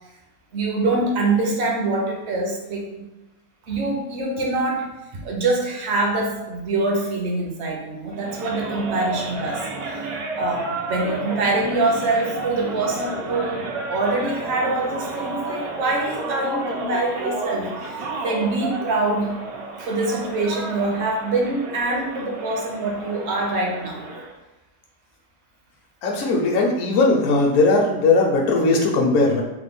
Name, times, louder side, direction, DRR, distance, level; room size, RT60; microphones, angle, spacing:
voice 1, 0.5-3.1 3.7-19.4 19.8-24.0, right 2 dB, 60° right, -1 dB, 0.8 m, -24 dB
sound 1, 8.1-24.3, right 3 dB, 80° right, 1.1 m, -31 dB
voice 2, 26.0-29.4, left 3 dB, 70° left, 0 dB, 0.9 m, -18 dB
3.3 x 2.1 x 3.5 m, 1.0 s
omnidirectional pair, 1.5 m